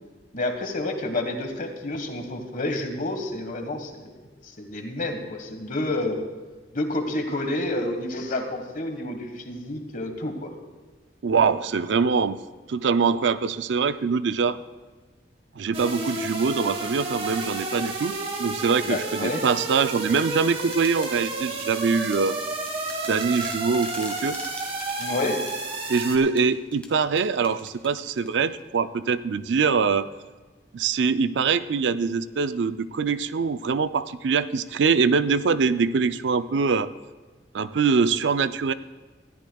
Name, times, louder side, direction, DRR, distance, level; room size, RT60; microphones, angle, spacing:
voice 1, 0.3-4.1 4.4-6.2 6.7-10.5 18.8-19.4 25.0-25.5, left 2 dB, 50° left, 5 dB, 1.5 m, -29 dB
voice 2, 11.2-12.4 12.7-14.6 15.6-22.4 23.1-24.4 25.9-30.1 30.7-36.9 37.5-38.7, right 5 dB, 85° right, 13 dB, 0.4 m, -23 dB
sound 1, 15.7-26.2, right 2 dB, 35° right, 1.4 m, -31 dB
sound 2, 20.1-28.6, left 2 dB, 5° left, 1.7 m, -44 dB
19.5 x 14.0 x 2.3 m, 1.3 s
head